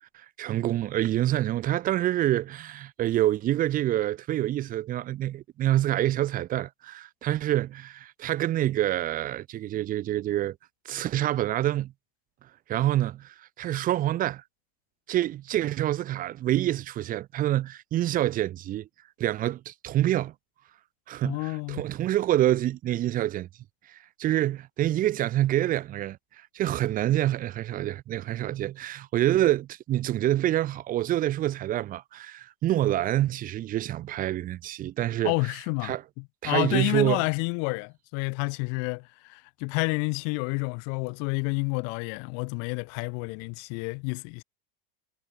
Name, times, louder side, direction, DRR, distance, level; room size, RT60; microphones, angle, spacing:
voice 1, 0.4-10.5 10.8-11.9 12.7-14.4 15.1-18.9 19.2-20.3 21.1-23.5 23.9-26.2 26.5-35.3 35.8-36.0 36.4-37.2, right 13 dB, 25° right, 1.7 m, -27 dB
voice 2, 21.2-21.8 35.2-44.4, left 40 dB or more, 45° left, 1.3 m, -30 dB
supercardioid pair, 170°, 31 cm